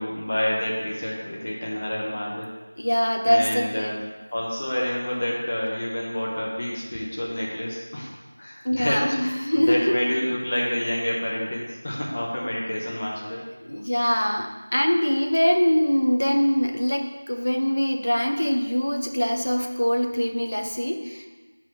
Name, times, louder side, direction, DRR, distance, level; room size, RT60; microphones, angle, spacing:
voice 1, 0.0-2.5 3.2-4.0 4.3-8.1 8.4-13.4, left 1 dB, 20° left, -3 dB, 0.7 m, -28 dB
voice 2, 2.8-4.0 8.6-10.0 13.6-21.3, equal, 70° left, 3 dB, 0.8 m, -23 dB
6.9 x 3.8 x 5.6 m, 1.3 s
figure-of-eight pair, 180°, 0 cm